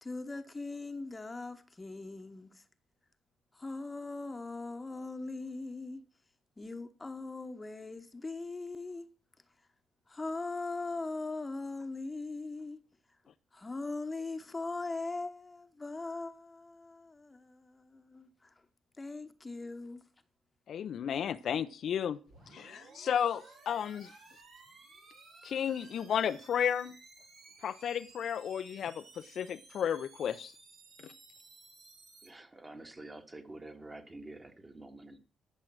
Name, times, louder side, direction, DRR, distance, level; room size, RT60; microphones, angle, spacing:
voice 1, 0.0-2.6 3.5-6.0 6.6-9.1 10.1-12.8 13.5-18.5 19.0-20.0, left 3 dB, 20° left, 1.1 m, -40 dB
voice 2, 20.7-22.2 22.5-24.1 25.4-26.9 27.6-30.5 31.0-31.1, left 8 dB, 65° left, 0.5 m, -33 dB
sound 1, 22.3-32.3, right 3 dB, 75° right, 4.2 m, -56 dB
voice 3, 32.2-35.2, right 2 dB, 20° right, 1.8 m, -48 dB
12.5 x 6.4 x 6.1 m
cardioid pair, 90°, 0 cm